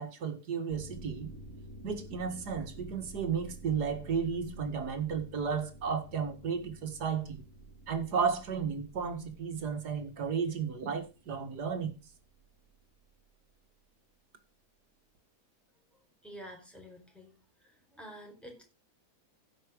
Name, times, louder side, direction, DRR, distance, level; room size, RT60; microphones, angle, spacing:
voice 1, 0.0-1.3 1.8-7.4 7.9-11.9, right 6 dB, 90° right, 2.2 m, -33 dB
sound 1, 0.7-12.8 13.1-13.2, right 1 dB, 45° right, 2.8 m, -50 dB
voice 2, 16.2-17.3 17.9-18.6, equal, ahead, 4.3 m, -48 dB
16.0 x 5.9 x 5.1 m
omnidirectional pair, 1.7 m